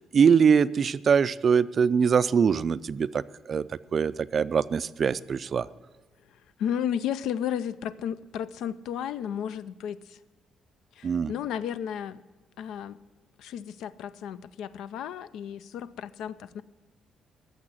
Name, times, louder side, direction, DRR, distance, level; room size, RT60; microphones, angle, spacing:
voice 1, 0.1-3.2 3.5-3.7 3.9-5.7 11.0-11.3, right 6 dB, 40° right, 16 dB, 0.3 m, -22 dB
voice 2, 6.6-10.2 11.0-12.2 12.6-13.0 13.4-16.6, left 9 dB, 85° left, 15 dB, 0.5 m, -33 dB
14.5 x 6.7 x 9.0 m, 1.2 s
cardioid pair, 155°, 0 cm